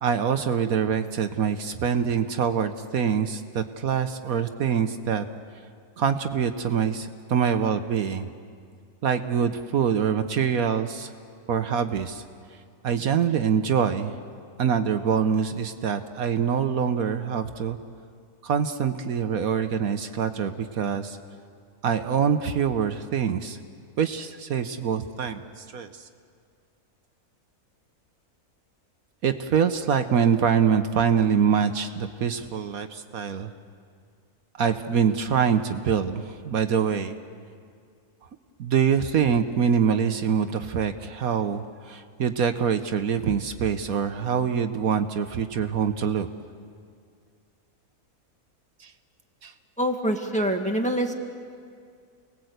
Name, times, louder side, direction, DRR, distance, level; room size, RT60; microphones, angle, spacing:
voice 1, 0.0-5.2 6.0-8.3 9.0-11.1 11.5-12.2 12.8-14.2 14.6-17.8 18.4-21.2 21.8-23.6 24.0-25.9 29.2-33.5 34.6-37.2 38.6-46.3 48.8-48.9 49.4-49.5, right 7 dB, 70° right, 8 dB, 1.3 m, -25 dB
voice 2, 49.8-51.1, right 1 dB, 5° left, 2 dB, 1.8 m, -25 dB
29.5 x 20.0 x 8.0 m, 2.2 s
omnidirectional pair, 1.6 m